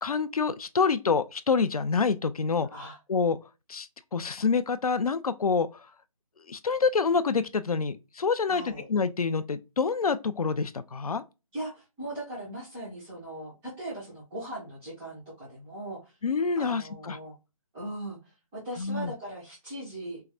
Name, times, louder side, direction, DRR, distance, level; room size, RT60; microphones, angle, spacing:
voice 1, 0.0-2.7 3.1-3.4 3.7-5.7 6.5-11.2 16.2-17.2 18.8-19.1, left 5 dB, 85° left, 0.5 m, -27 dB
voice 2, 8.5-8.8 11.5-16.1 16.6-17.3 17.7-20.2, right 1 dB, ahead, 0.3 m, -39 dB
4.6 x 2.1 x 2.4 m
figure-of-eight pair, 160°, 18 cm